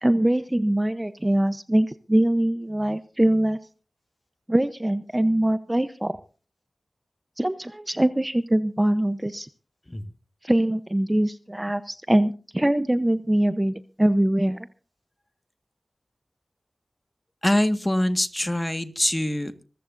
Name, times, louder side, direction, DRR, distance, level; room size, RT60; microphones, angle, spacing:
voice 1, 0.0-3.6 4.5-6.2 7.4-9.5 10.4-14.7, right 1 dB, 15° right, 12 dB, 0.9 m, -23 dB
voice 2, 17.4-19.6, left 1 dB, 20° left, 9 dB, 1.7 m, -24 dB
25.5 x 14.5 x 2.6 m, 0.38 s
wide cardioid pair, 50°, 0 cm